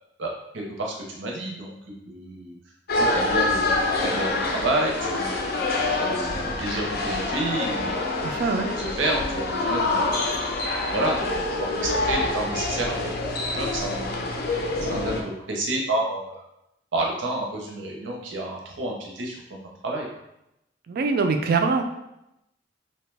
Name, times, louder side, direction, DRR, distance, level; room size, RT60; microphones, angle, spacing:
voice 1, 0.5-2.5 2.9-8.0 8.8-10.3 10.9-14.2 14.9-16.5 16.9-20.1, right 1 dB, 85° right, -1 dB, 0.7 m, -30 dB
sound 1, 2.9-15.2, left 2 dB, 55° left, 0.4 m, -26 dB
voice 2, 8.2-8.7 20.9-21.9, right 4 dB, 55° right, 6 dB, 0.3 m, -23 dB
2.7 x 2.2 x 3.2 m, 0.85 s
head